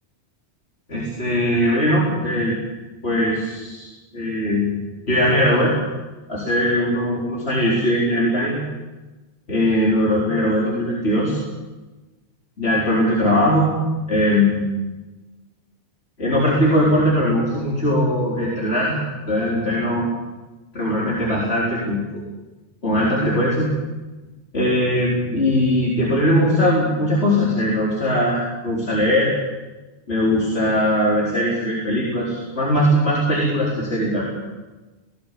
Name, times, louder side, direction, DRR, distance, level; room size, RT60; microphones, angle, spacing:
voice 1, 0.9-2.5 3.0-3.9 4.1-4.7 5.1-5.7 6.3-8.7 9.5-11.4 12.6-13.8 14.1-14.6 16.2-19.0 19.3-20.1 20.7-22.2 22.8-23.7 24.5-29.3 30.1-34.2, equal, 65° left, -5 dB, 4.6 m, -20 dB
19.5 x 18.5 x 8.5 m, 1.2 s
omnidirectional pair, 1.2 m